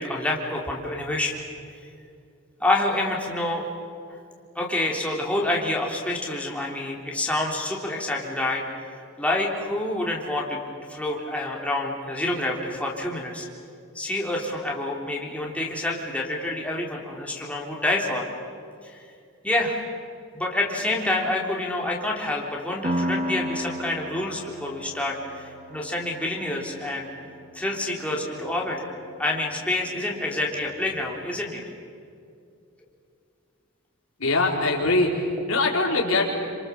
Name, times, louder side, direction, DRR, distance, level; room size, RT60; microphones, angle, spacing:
voice 1, 0.0-1.4 2.6-3.7 4.6-8.6 8.9-10.6 10.9-13.5 14.0-18.3 18.8-19.0 19.4-19.8 20.3-27.1 27.5-28.9 29.2-31.6, left 1 dB, 5° left, -2 dB, 3.6 m, -27 dB
Piano, 22.8-30.2, equal, 30° right, 2.8 m, -35 dB
voice 2, 34.2-36.3, left 2 dB, 80° left, 0 dB, 4.7 m, -22 dB
28.5 x 27.0 x 7.2 m, 2.4 s
head